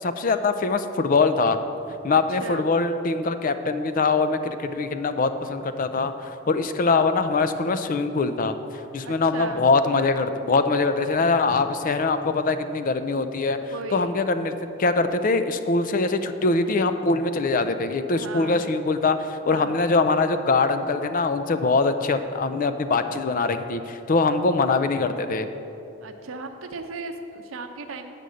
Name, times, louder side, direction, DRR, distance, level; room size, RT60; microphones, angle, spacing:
voice 1, 0.0-1.6 2.0-6.1 6.5-8.5 8.9-13.6 13.9-14.5 14.8-25.5, left 3 dB, 40° left, 10 dB, 0.4 m, -23 dB
voice 2, 9.0-9.6 13.6-14.2 18.2-18.7 19.5-19.8 26.0-28.1, right 3 dB, 90° right, 6 dB, 0.7 m, -36 dB
8.3 x 5.2 x 7.6 m, 3.0 s
head